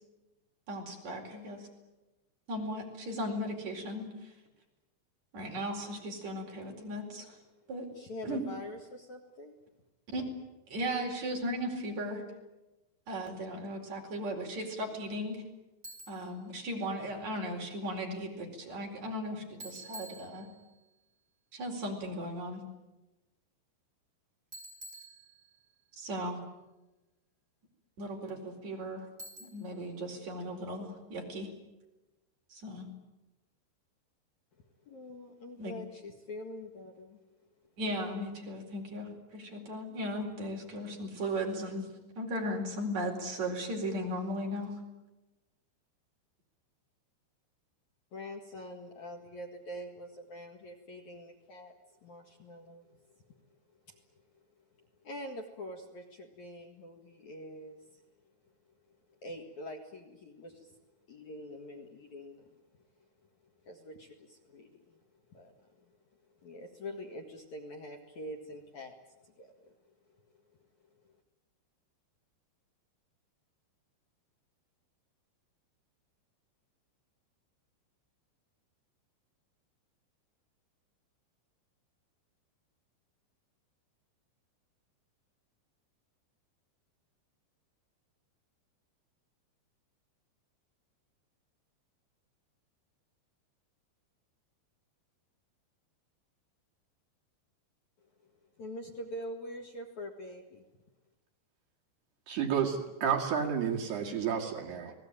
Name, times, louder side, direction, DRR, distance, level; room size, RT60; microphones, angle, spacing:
voice 1, 0.7-1.7 2.5-4.3 5.3-7.4 7.7-7.9 8.2-8.4 10.1-10.2 10.7-12.2 13.1-15.4 16.1-20.5 21.5-22.6 26.0-26.4 28.0-29.1 29.4-31.5 32.5-32.9 35.6-35.7 37.8-41.9 42.2-44.7, equal, 40° right, 1 dB, 5.5 m, -37 dB
voice 2, 7.9-9.6 34.9-37.3 48.1-51.7 52.0-53.0 53.9-54.0 54.8-58.0 59.2-60.8 61.1-62.6 63.6-65.0 65.3-65.9 66.4-69.0 69.2-69.7 71.0-71.1 98.6-100.6, left 1 dB, 50° left, 3 dB, 2.6 m, -45 dB
Bicycle, 15.8-16.4 19.6-20.8 24.5-25.8 29.2-29.9, right 2 dB, 20° right, 4.8 m, -49 dB
voice 3, 102.3-104.9, right 7 dB, 65° right, 1 dB, 4.2 m, -31 dB
29.5 x 19.5 x 9.0 m, 1.1 s
omnidirectional pair, 5.3 m